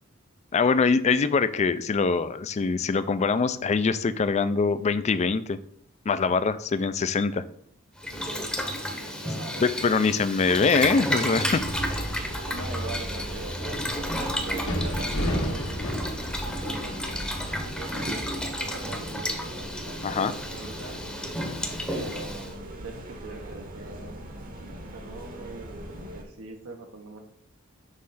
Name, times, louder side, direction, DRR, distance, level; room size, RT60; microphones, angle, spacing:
voice 1, 0.5-5.6 6.1-7.4 9.6-12.0 20.0-20.3, left 4 dB, 30° left, 13 dB, 0.3 m, -24 dB
Boiling, 8.0-22.5, equal, 5° left, 0.8 m, -32 dB
voice 2, 8.1-10.1 12.5-15.9 16.4-17.3 17.5-21.0 21.9-24.2 24.5-27.2, right 3 dB, 75° right, 3 dB, 0.9 m, -42 dB
sound 1, 11.5-17.6, equal, 85° left, 1.7 m, -33 dB
sound 2, 11.9-26.2, right 1 dB, 40° right, 0.9 m, -42 dB
6.6 x 3.1 x 5.5 m, 0.63 s
head